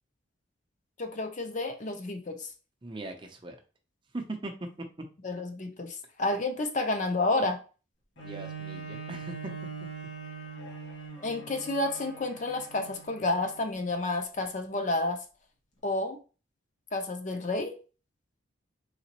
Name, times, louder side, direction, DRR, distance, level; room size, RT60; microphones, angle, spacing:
voice 1, 1.0-2.5 5.2-7.6 11.2-15.2 15.8-16.2 16.9-17.7, left 2 dB, 40° left, 5 dB, 0.6 m, -30 dB
voice 2, 2.8-3.6 4.1-4.5 8.2-9.5, right 2 dB, 25° right, 4 dB, 0.6 m, -39 dB
Bowed string instrument, 8.2-13.8 14.4-14.5, right 5 dB, 70° left, 1.5 m, -42 dB
4.0 x 3.7 x 2.9 m, 0.35 s
head